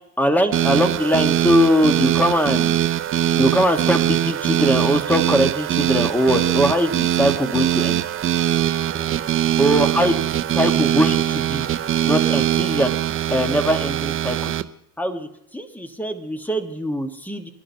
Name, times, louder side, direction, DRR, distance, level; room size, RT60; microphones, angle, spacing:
voice 1, 0.2-2.8 3.3-8.0 9.6-10.2 10.5-11.7 12.0-12.9 13.3-14.5 15.0-15.3 15.5-17.5, equal, 5° left, 7 dB, 1.3 m, -21 dB
sound 1, 0.5-14.6, right 11 dB, 25° right, 0.5 m, -21 dB
23.0 x 11.0 x 2.8 m, 0.75 s
supercardioid pair, 95°, 49 cm